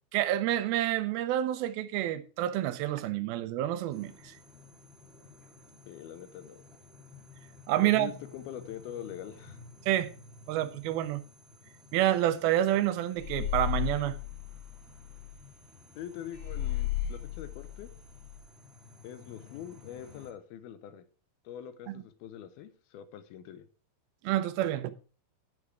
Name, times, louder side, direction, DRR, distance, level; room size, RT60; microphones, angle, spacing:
voice 1, 0.1-4.4 7.7-8.1 9.9-10.1 10.5-11.2 11.9-14.2 21.9-22.0 24.2-24.9, right 13 dB, 80° right, 2.6 m, -28 dB
sound 1, 3.9-20.3, left 4 dB, ahead, 2.0 m, -54 dB
voice 2, 5.9-6.6 7.8-9.6 16.0-17.9 19.0-21.0 21.5-23.7, left 10 dB, 90° left, 2.8 m, -44 dB
sound 2, 13.2-15.3 16.3-18.4, left 12 dB, 65° left, 0.6 m, -34 dB
10.5 x 6.9 x 4.7 m
omnidirectional pair, 4.3 m